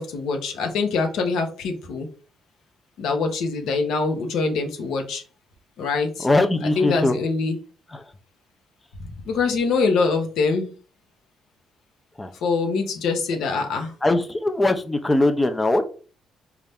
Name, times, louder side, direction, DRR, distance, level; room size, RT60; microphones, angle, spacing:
voice 1, 0.0-2.1 3.0-5.2 5.8-6.3 6.8-7.6 9.0-10.7 12.4-13.9, left 4 dB, 80° left, 4 dB, 0.8 m, -24 dB
voice 2, 6.2-7.2 7.9-8.0 12.2-12.3 14.0-15.8, left 2 dB, 15° left, 8 dB, 0.5 m, -21 dB
4.2 x 2.4 x 3.4 m, 0.38 s
cardioid pair, 90°, 0 cm